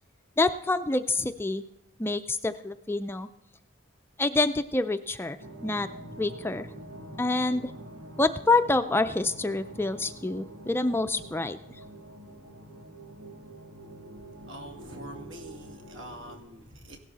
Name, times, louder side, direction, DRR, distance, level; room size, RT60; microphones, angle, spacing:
voice 1, 0.4-1.6 2.0-3.3 4.2-5.4 5.6-5.9 6.2-6.7 7.2-7.7 8.2-11.6, left 2 dB, 10° left, 11 dB, 0.4 m, -27 dB
sound 1, 5.4-16.4, right 1 dB, 85° right, 2.8 m, -45 dB
voice 2, 14.4-17.0, right 1 dB, 70° right, 3 dB, 2.3 m, -45 dB
17.0 x 12.0 x 4.1 m, 0.83 s
head